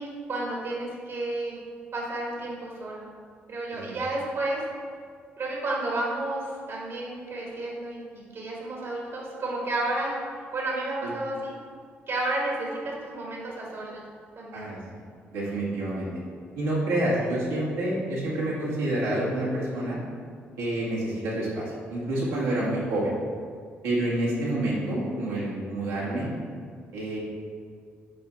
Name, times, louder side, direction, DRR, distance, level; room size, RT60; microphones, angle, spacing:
voice 1, 0.0-1.6 1.9-3.1 3.5-4.6 5.4-10.2 10.5-11.5 12.1-14.0 14.4-14.7 17.2-17.3, right 2 dB, 55° right, -3 dB, 1.7 m, -31 dB
voice 2, 15.3-16.1 16.6-20.0 20.6-23.1 23.8-26.3 26.9-27.2, right 1 dB, 80° right, -7 dB, 1.8 m, -28 dB
9.4 x 3.5 x 4.4 m, 2.1 s
hypercardioid pair, 45°, 6 cm